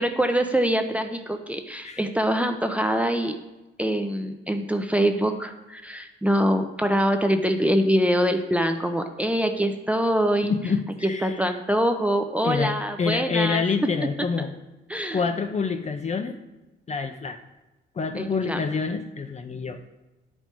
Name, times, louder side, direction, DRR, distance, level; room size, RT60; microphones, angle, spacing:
voice 1, 0.0-3.4 3.8-10.5 11.0-13.6 14.0-14.1 14.9-15.2 18.2-18.6, equal, 5° right, 6 dB, 0.6 m, -24 dB
voice 2, 10.4-11.3 12.4-14.5 15.1-16.4 16.9-17.4 17.9-19.8, left 5 dB, 35° left, 7 dB, 0.7 m, -27 dB
10.0 x 4.5 x 4.6 m, 1.1 s
cardioid pair, 90°, 20 cm